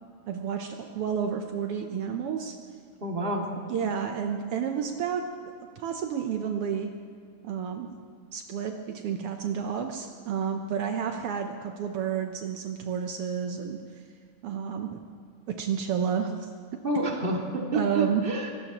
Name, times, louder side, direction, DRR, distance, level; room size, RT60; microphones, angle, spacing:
voice 1, 0.3-2.6 3.7-6.9 7.4-7.9 8.3-13.8 14.4-15.0 15.5-16.5 17.7-18.2, right 7 dB, 85° right, 4 dB, 1.2 m, -30 dB
voice 2, 3.0-3.5 16.8-18.5, right 2 dB, 20° right, -1 dB, 1.9 m, -28 dB
24.0 x 18.5 x 3.0 m, 2.3 s
omnidirectional pair, 3.7 m